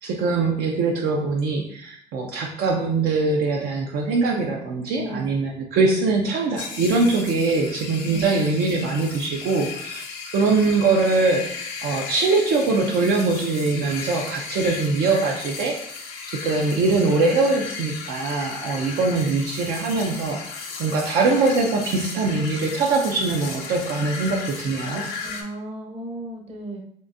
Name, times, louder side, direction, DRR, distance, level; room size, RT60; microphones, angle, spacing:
voice 1, 0.0-10.0 10.3-11.5 11.8-16.1 16.4-25.0, right 3 dB, 70° right, 1 dB, 0.5 m, -22 dB
voice 2, 4.9-5.3 8.1-8.3 25.2-26.8, right 1 dB, 35° right, 1 dB, 0.8 m, -34 dB
sound 1, 6.6-25.4, left 5 dB, 75° left, 0.7 m, -35 dB
3.6 x 2.6 x 2.5 m, 0.66 s
cardioid pair, 110°, 17 cm